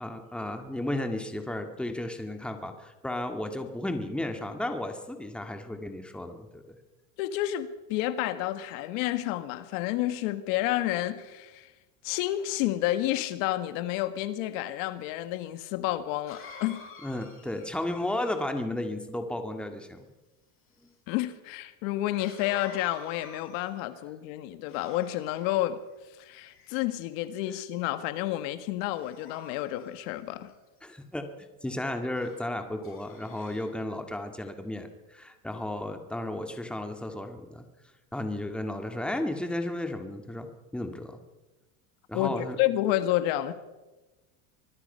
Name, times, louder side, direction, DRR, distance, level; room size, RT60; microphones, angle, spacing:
voice 1, 0.0-6.8 17.0-20.1 30.8-31.3 31.6-37.7 38.1-41.2 42.1-42.6, left 1 dB, ahead, 1.9 m, -34 dB
voice 2, 7.2-11.7 12.0-16.9 21.1-25.8 26.2-30.5 42.1-43.5, left 14 dB, 70° left, 1.6 m, -30 dB
Cough, 15.2-15.3 16.3-18.6 22.2-23.9 24.6-25.5 26.3-27.0 27.6-27.9 28.9-30.5 32.1-32.4 32.8-33.7, left 5 dB, 30° left, 7.2 m, -49 dB
25.0 x 20.0 x 5.6 m
supercardioid pair, 135°, 40 cm